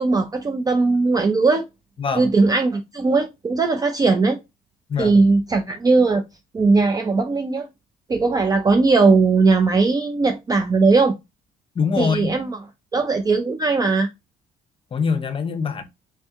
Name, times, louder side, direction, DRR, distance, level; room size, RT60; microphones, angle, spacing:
voice 1, 0.0-1.6 2.2-4.4 5.0-6.2 6.5-7.7 8.1-11.2 12.0-12.6 12.9-14.1, right 3 dB, 20° right, 0.4 m, -18 dB
voice 2, 11.8-12.3 14.9-15.8, left 5 dB, 30° left, 0.7 m, -23 dB
3.5 x 2.7 x 3.4 m
cardioid pair, 110°, 17 cm